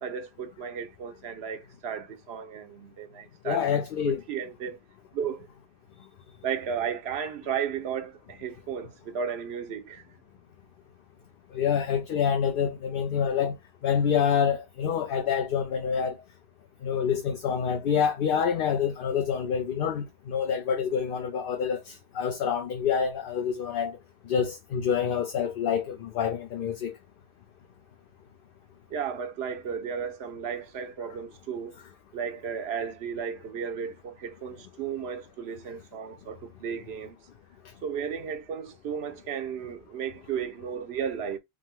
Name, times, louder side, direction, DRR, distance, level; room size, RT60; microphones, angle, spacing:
voice 1, 0.0-3.8 4.1-4.8 5.1-5.5 6.4-10.0 28.9-31.7 32.1-37.2 37.8-41.4, right 7 dB, 80° right, 1.0 m, -34 dB
voice 2, 3.4-4.2 11.5-13.6 13.8-16.2 16.8-24.0 24.3-26.9, left 7 dB, 65° left, 0.7 m, -27 dB
5.0 x 2.1 x 3.5 m
omnidirectional pair, 1.1 m